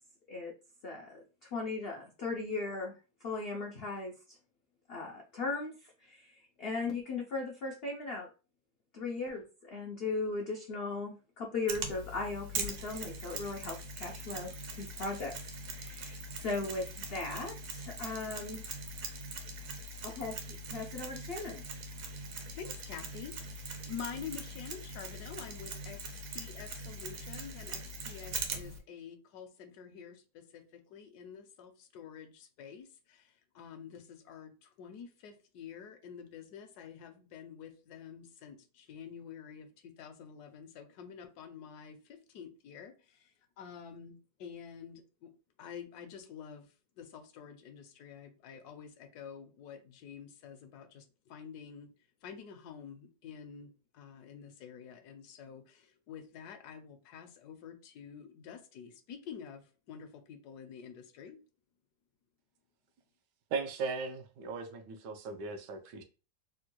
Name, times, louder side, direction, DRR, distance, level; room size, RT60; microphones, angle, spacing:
voice 1, 0.8-1.2 1.5-2.9 3.2-4.1 4.9-5.7 6.0-6.3 6.6-8.3 8.9-14.5 14.8-15.3 15.7-18.6 20.0-20.4 20.7-21.6, left 3 dB, 90° left, 0.5 m, -37 dB
Mechanisms, 11.7-28.8, right 2 dB, 65° right, 0.9 m, -42 dB
voice 2, 22.6-45.3 45.6-51.9 52.2-61.4, left 7 dB, 75° left, 1.1 m, -48 dB
voice 3, 63.5-66.0, right 4 dB, 85° right, 1.3 m, -37 dB
3.5 x 2.2 x 2.8 m
omnidirectional pair, 1.8 m